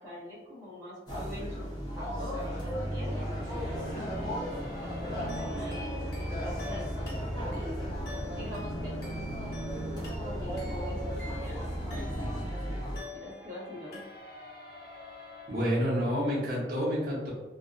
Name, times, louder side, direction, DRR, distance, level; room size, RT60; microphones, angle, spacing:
voice 1, 0.0-1.7 2.0-4.1 4.8-7.8 8.4-9.1 9.9-11.0 11.4-11.6 11.9-12.3 13.1-14.0, left 1 dB, 20° right, -9 dB, 0.9 m, -44 dB
sound 1, 1.1-13.0, equal, 25° left, 0.6 m, -35 dB
sound 2, 2.8-16.7, left 1 dB, 90° right, 0.9 m, -49 dB
sound 3, 5.3-12.5 13.0-13.6 13.9-14.6, left 3 dB, 60° left, 0.7 m, -47 dB
voice 2, 15.5-17.3, equal, 55° right, -6 dB, 0.9 m, -29 dB
2.5 x 2.1 x 2.5 m, 1.1 s
head